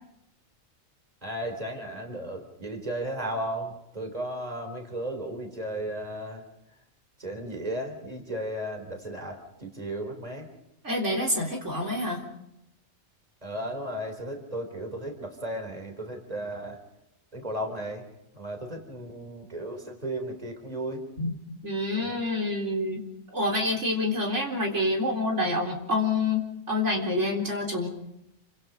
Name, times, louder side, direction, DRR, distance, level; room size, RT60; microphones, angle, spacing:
voice 1, 1.2-6.4 7.2-10.5 13.4-16.8 17.3-18.0 18.3-21.0 22.0-22.2, right 1 dB, 30° right, 4 dB, 4.1 m, -35 dB
voice 2, 10.8-12.2 21.2-21.4 21.6-23.0 23.3-27.9, left 2 dB, 65° right, 0 dB, 4.1 m, -27 dB
29.5 x 25.5 x 5.3 m, 0.85 s
omnidirectional pair, 1.4 m